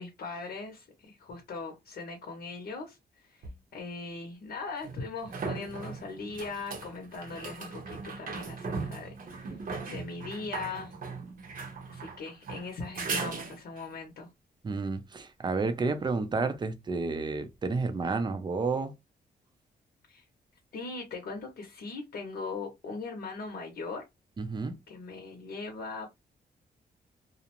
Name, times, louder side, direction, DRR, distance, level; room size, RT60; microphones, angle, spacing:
voice 1, 0.0-3.4 3.7-9.1 9.4-9.6 9.8-10.9 11.9-14.3 20.1-20.2 20.7-24.0 24.9-26.1, left 4 dB, 70° left, 0.8 m, -40 dB
sound 1, 3.4-3.5 4.8-13.9 17.4-17.5, right 4 dB, 55° right, 0.8 m, -38 dB
voice 2, 14.6-18.9 24.4-24.7, right 4 dB, 25° right, 0.5 m, -30 dB
2.5 x 2.0 x 2.8 m
cardioid pair, 105°, 17 cm